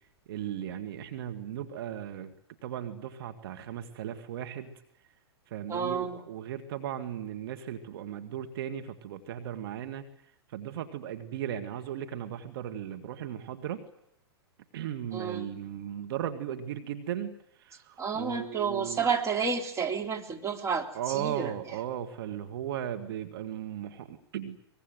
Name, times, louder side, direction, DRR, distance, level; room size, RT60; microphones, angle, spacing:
voice 1, 0.3-2.3 2.6-4.7 5.5-10.0 10.5-13.8 14.7-17.3 17.6-19.1 20.9-24.6, right 10 dB, 60° right, 6 dB, 2.4 m, -36 dB
voice 2, 5.7-6.2 15.1-15.5 18.0-21.5, right 6 dB, 20° right, 4 dB, 3.2 m, -30 dB
24.0 x 21.0 x 9.5 m, 0.74 s
hypercardioid pair, 115°, 14 cm